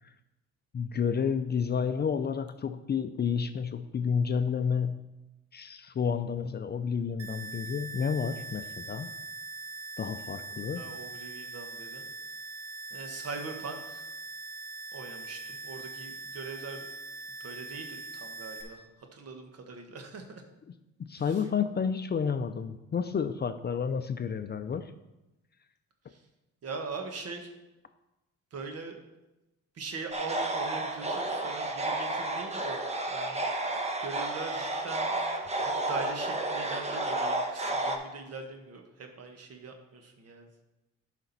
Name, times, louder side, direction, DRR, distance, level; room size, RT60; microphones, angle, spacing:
voice 1, 0.7-5.0 5.5-9.1 10.0-10.8 21.0-24.9, left 6 dB, 35° left, 9 dB, 0.5 m, -30 dB
sound 1, 7.2-18.6, right 3 dB, 80° right, 1.5 m, -42 dB
voice 2, 10.7-12.1 12.9-14.1 14.9-16.9 17.4-20.4 21.2-21.5 26.1-26.3 26.6-27.5 28.5-29.0 29.7-32.8 33.1-33.5 34.0-35.2 35.6-40.6, right 4 dB, 55° right, 4 dB, 1.5 m, -41 dB
sound 2, 30.1-38.0, right 2 dB, 20° right, 1.1 m, -31 dB
11.5 x 5.1 x 4.2 m, 0.97 s
cardioid pair, 90°, 30 cm